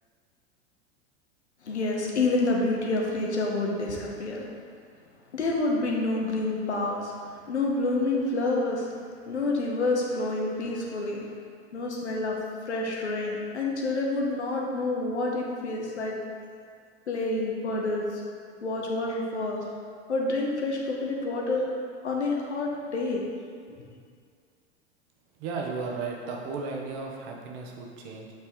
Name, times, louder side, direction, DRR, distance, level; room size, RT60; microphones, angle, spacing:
voice 1, 1.6-4.4 5.3-7.1 7.5-8.9 9.3-11.2 11.7-12.4 12.7-16.1 17.1-18.2 18.6-19.6 20.1-21.6 22.0-23.2, left 2 dB, 85° left, -1 dB, 1.2 m, -28 dB
voice 2, 25.4-28.3, right 4 dB, 50° right, 0 dB, 1.2 m, -35 dB
7.5 x 4.7 x 3.6 m, 2.1 s
hypercardioid pair, 90°, 33 cm